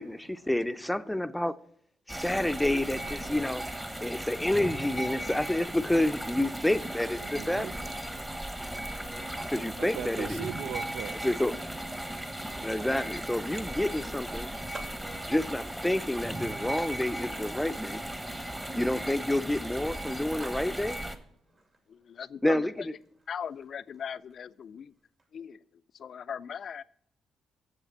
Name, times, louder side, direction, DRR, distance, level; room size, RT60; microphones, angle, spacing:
voice 1, 0.0-1.6 2.1-3.7 4.0-7.7 9.5-10.5 11.1-11.6 12.6-14.5 15.3-18.0 18.7-21.0 22.4-22.7, left 1 dB, 5° left, 0.5 m, -29 dB
sound 1, 2.1-21.2, right 1 dB, 10° right, 1.1 m, -37 dB
voice 2, 7.4-8.8 9.8-11.2, right 10 dB, 85° right, 0.3 m, -40 dB
Skateboard, 10.4-25.3, right 2 dB, 40° right, 2.3 m, -56 dB
voice 3, 21.9-23.0 23.3-24.9 25.3-26.8, left 7 dB, 60° left, 0.3 m, -39 dB
7.4 x 7.1 x 7.0 m
cardioid pair, 75°, 0 cm